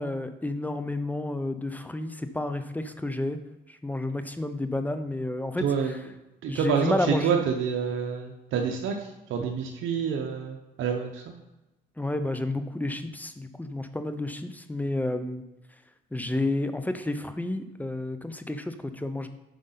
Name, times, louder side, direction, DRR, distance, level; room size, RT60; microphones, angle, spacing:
voice 1, 0.0-3.4 3.8-5.7 6.5-7.4 12.0-15.4 16.1-19.3, left 2 dB, 10° left, 9 dB, 0.6 m, -30 dB
voice 2, 5.6-6.0 6.4-11.2, right 6 dB, 80° right, 2 dB, 0.7 m, -28 dB
7.9 x 5.0 x 4.0 m, 1.0 s
cardioid pair, 90°, 20 cm